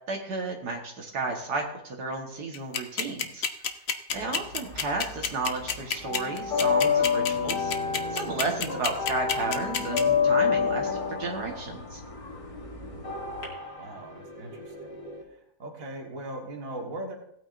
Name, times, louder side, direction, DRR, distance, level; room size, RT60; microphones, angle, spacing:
voice 1, 0.1-3.4 4.1-7.7 8.1-12.0, right 3 dB, 70° right, 1 dB, 1.9 m, -32 dB
sound 1, 2.5-10.0, left 7 dB, 50° left, 0.9 m, -28 dB
sound 2, 4.2-5.3 5.5-13.4, left 7 dB, 85° left, 3.0 m, -27 dB
sound 3, 6.5-15.2, left 2 dB, 20° left, 1.1 m, -40 dB
voice 2, 12.8-13.2 13.8-15.0 15.3-17.1, right 1 dB, 55° right, 1 dB, 1.9 m, -40 dB
18.0 x 8.8 x 2.6 m, 0.74 s
omnidirectional pair, 1.8 m